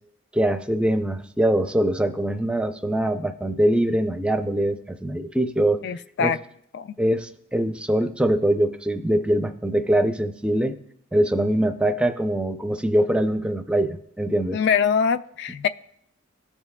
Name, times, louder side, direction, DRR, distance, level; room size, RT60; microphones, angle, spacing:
voice 1, 0.3-5.8 6.2-6.4 7.0-10.7 11.1-14.6, right 1 dB, 5° right, 8 dB, 0.4 m, -23 dB
voice 2, 5.8-6.4 6.7-7.0 14.5-15.7, left 7 dB, 60° left, 14 dB, 0.3 m, -23 dB
17.0 x 7.0 x 2.2 m, 0.72 s
head